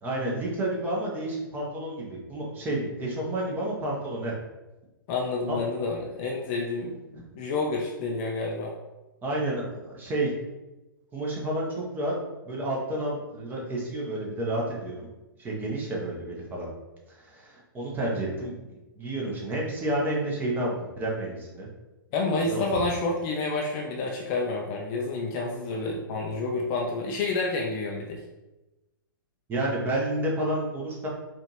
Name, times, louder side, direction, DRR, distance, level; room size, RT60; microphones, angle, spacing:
voice 1, 0.0-4.3 5.5-5.6 7.1-7.2 9.2-10.3 11.1-12.1 12.5-15.1 15.4-16.7 17.1-18.6 19.0-21.7 22.4-22.7 29.5-31.1, right 1 dB, 15° right, -3 dB, 1.0 m, -30 dB
voice 2, 5.1-8.7 22.1-28.2, left 3 dB, 30° left, 0 dB, 0.5 m, -29 dB
4.9 x 2.5 x 3.1 m, 1.1 s
figure-of-eight pair, 110°, 12 cm